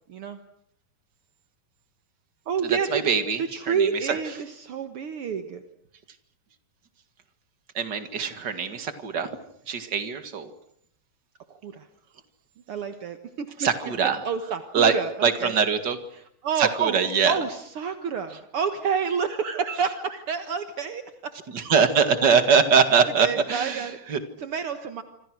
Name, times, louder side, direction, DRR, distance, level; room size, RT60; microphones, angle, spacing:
voice 1, 0.1-0.4 2.5-3.0 3.4-5.6 11.5-11.9 12.7-13.5 14.2-15.5 16.1-17.0 17.3-21.3 23.2-24.0 24.4-25.0, right 6 dB, 60° right, 8 dB, 1.5 m, -29 dB
voice 2, 2.7-4.2 7.7-9.4 9.7-10.5 13.6-14.2 14.7-14.9 15.2-16.0 16.6-17.4 21.5-24.2, right 6 dB, 35° right, 9 dB, 2.1 m, -23 dB
27.0 x 26.5 x 6.3 m, 0.70 s
omnidirectional pair, 4.3 m